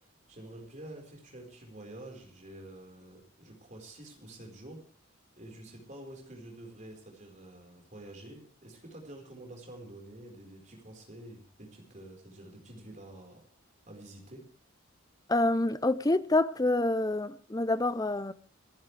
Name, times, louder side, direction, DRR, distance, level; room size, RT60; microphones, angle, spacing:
voice 1, 0.3-4.8 5.4-13.4 13.9-14.4, right 1 dB, 35° right, 4.6 m, -48 dB
voice 2, 15.3-18.3, left 2 dB, 15° left, 0.6 m, -27 dB
27.0 x 11.0 x 3.4 m
head